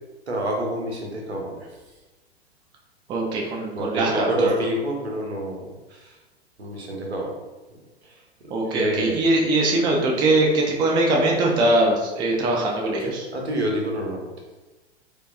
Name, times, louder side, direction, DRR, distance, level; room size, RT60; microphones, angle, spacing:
voice 1, 0.3-1.7 3.7-6.1 6.6-7.4 8.0-8.2 8.6-9.2 13.3-14.3, right 1 dB, 75° right, 0 dB, 1.0 m, -27 dB
voice 2, 3.1-4.5 8.5-13.3, right 2 dB, 15° right, -1 dB, 0.4 m, -21 dB
4.4 x 2.8 x 2.5 m, 1.2 s
figure-of-eight pair, 100°, 33 cm